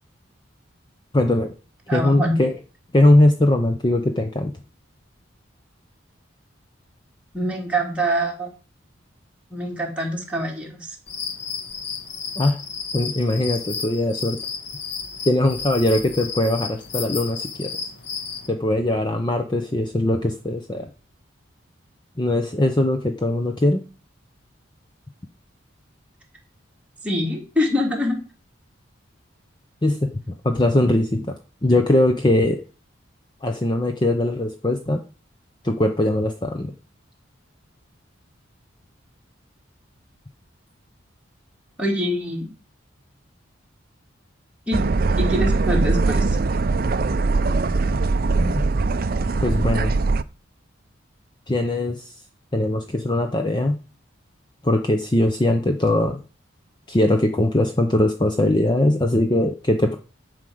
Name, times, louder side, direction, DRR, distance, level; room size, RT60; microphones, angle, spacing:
voice 1, 1.1-1.5 1.9-2.5 2.9-4.5 12.4-12.6 12.9-14.4 15.3-17.7 18.5-20.9 22.2-23.8 29.8-30.1 30.4-31.3 31.6-32.6 33.4-35.0 35.6-36.7 48.4-48.6 49.4-50.0 51.5-52.1 52.5-53.8 54.6-56.2 56.9-59.9, left 1 dB, 20° left, 5 dB, 0.7 m, -20 dB
voice 2, 1.9-2.4 7.3-8.5 9.5-11.0 27.0-28.2 41.8-42.5 44.7-44.8 45.2-46.4, equal, 5° right, -2 dB, 2.7 m, -24 dB
sound 1, 11.1-18.5, left 5 dB, 55° left, 1.6 m, -32 dB
sound 2, 44.7-50.2, right 3 dB, 45° right, 0.5 m, -21 dB
11.0 x 5.0 x 7.8 m, 0.36 s
head